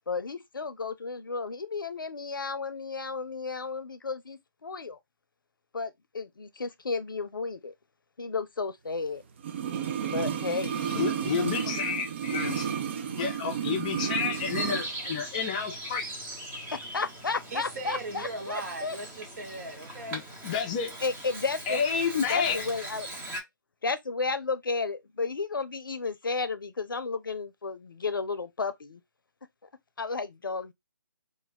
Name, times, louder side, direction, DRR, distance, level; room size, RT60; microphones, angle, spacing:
voice 1, 0.1-5.0 5.7-7.7 8.2-9.2 10.1-10.8 16.7-19.0 21.0-21.8 22.3-23.2 23.8-29.0 30.0-30.7, left 4 dB, 85° left, 0.6 m, -33 dB
sound 1, 9.4-14.9 15.2-15.3, right 8 dB, 35° right, 0.4 m, -32 dB
voice 2, 10.9-16.1 20.1-21.0 21.7-22.6, left 6 dB, 25° left, 0.5 m, -30 dB
Bird vocalization bird call bird song, 14.3-23.4, right 1 dB, 15° right, 0.9 m, -40 dB
voice 3, 17.5-20.2, right 2 dB, 50° right, 1.1 m, -38 dB
2.5 x 2.3 x 4.0 m
figure-of-eight pair, 150°, 11 cm